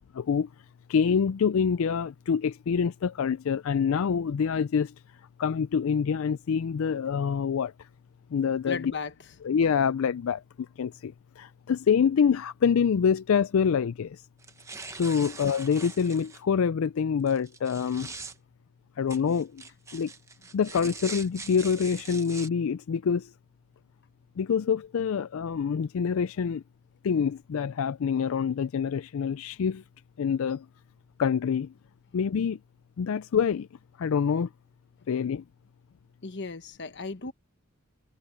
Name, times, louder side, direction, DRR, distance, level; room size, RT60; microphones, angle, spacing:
voice 1, 0.2-0.5 0.9-4.9 5.4-7.7 8.3-8.9 9.4-10.4 10.8-14.2 14.9-18.1 19.0-19.6 19.9-20.1 20.5-23.3 24.4-26.6 27.0-29.8 30.2-30.6 31.2-31.7 32.1-32.6 33.0-33.7 34.0-34.5 35.1-35.4, left 6 dB, 65° left, 0.4 m, -26 dB
voice 2, 8.6-9.1 15.2-15.3 36.2-37.3, left 4 dB, 50° left, 1.3 m, -35 dB
sound 1, 14.4-16.4 17.3-18.4 19.1-22.5, right 4 dB, 15° right, 1.0 m, -42 dB
head